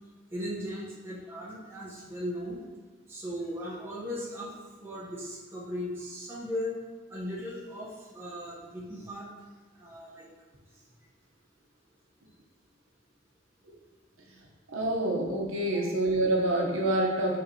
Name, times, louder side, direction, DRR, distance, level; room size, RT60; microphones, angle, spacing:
voice 1, 0.3-2.6 3.1-4.5 4.8-6.8 7.1-9.3 9.8-10.3 15.7-15.8, equal, 10° right, -6 dB, 0.8 m, -37 dB
voice 2, 14.7-17.4, right 1 dB, 90° right, -2 dB, 0.8 m, -27 dB
5.5 x 3.2 x 2.8 m, 1.4 s
head